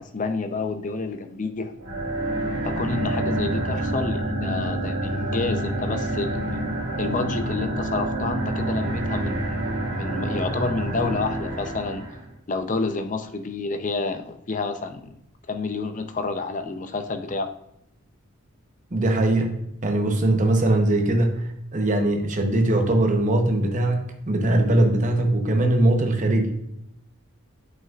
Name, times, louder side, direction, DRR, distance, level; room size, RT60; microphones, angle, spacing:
voice 1, 0.0-1.7 2.6-6.6 7.0-12.1 12.5-15.2 15.5-17.5, left 3 dB, 35° left, 7 dB, 0.5 m, -29 dB
sound 1, 1.8-12.3, right 1 dB, 75° right, 2.0 m, -27 dB
voice 2, 18.9-19.6 19.8-26.5, right 1 dB, 35° right, 4 dB, 0.9 m, -21 dB
7.9 x 5.6 x 2.4 m, 0.79 s
head